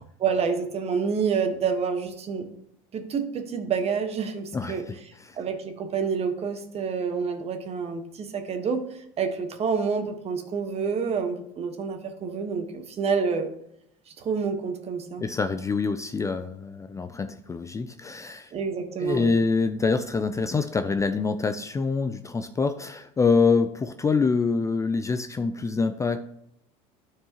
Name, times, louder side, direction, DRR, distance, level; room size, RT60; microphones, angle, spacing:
voice 1, 0.2-2.5 2.9-4.8 5.4-8.8 9.2-13.5 14.2-15.2 18.5-19.4, right 5 dB, 35° right, 6 dB, 1.3 m, -28 dB
voice 2, 4.5-4.9 5.2-5.4 15.2-18.5 19.0-26.2, left 4 dB, 20° left, 9 dB, 0.4 m, -25 dB
12.5 x 4.7 x 2.9 m, 0.75 s
supercardioid pair, 100°, 17 cm